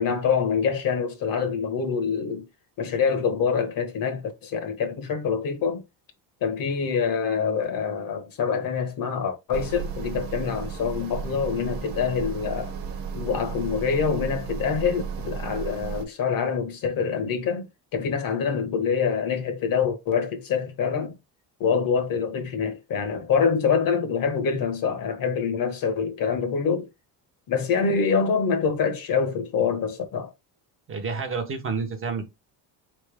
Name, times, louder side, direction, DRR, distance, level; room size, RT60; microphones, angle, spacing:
voice 1, 0.0-2.4 2.8-5.8 6.4-12.7 13.1-17.7 17.9-21.1 21.6-26.9 27.5-30.3, left 6 dB, 55° left, 1.3 m, -25 dB
sound 1, 9.5-16.1, right 6 dB, 55° right, 1.3 m, -34 dB
voice 2, 30.9-32.3, right 4 dB, 30° right, 0.8 m, -29 dB
4.3 x 3.4 x 3.4 m
cardioid pair, 140°, 41 cm